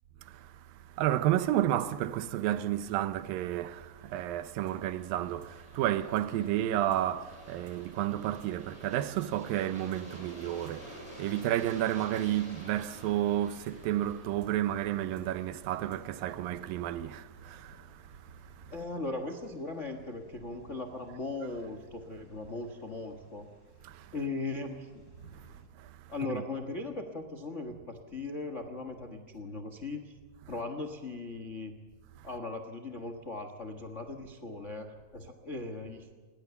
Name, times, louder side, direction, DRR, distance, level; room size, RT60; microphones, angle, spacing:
voice 1, 1.0-17.8 23.8-23.9 26.3-26.4, right 12 dB, 90° right, 2.6 m, -31 dB
Aircraft, 3.8-16.6, equal, 10° left, 6.2 m, -52 dB
sound 1, 4.7-4.8 5.0-5.1 5.4-5.5 5.8-5.9 6.2-6.3 6.5-6.6 6.9-7.0 7.3-7.4 7.7-7.8 8.0-8.1 8.4-8.5 8.8-8.9 9.2-9.3 9.5-10.0 10.3-10.4 10.7-10.8 11.0-11.1 11.4-11.5 11.8-11.9 12.2-12.3 12.5-12.6 12.9-13.0 13.3-13.4 13.7-13.8 14.0-14.1 14.4-14.5 14.8-14.9 15.2-15.3 15.5-16.0 16.3-16.4, right 3 dB, 55° right, 5.4 m, -59 dB
sound 2, 10.1-25.7, right 1 dB, 25° right, 4.3 m, -58 dB
voice 2, 18.7-23.5 24.1-25.0 26.1-30.1 30.5-31.8 32.2-36.1, left 3 dB, 60° left, 0.7 m, -38 dB
28.5 x 21.5 x 7.0 m
omnidirectional pair, 3.9 m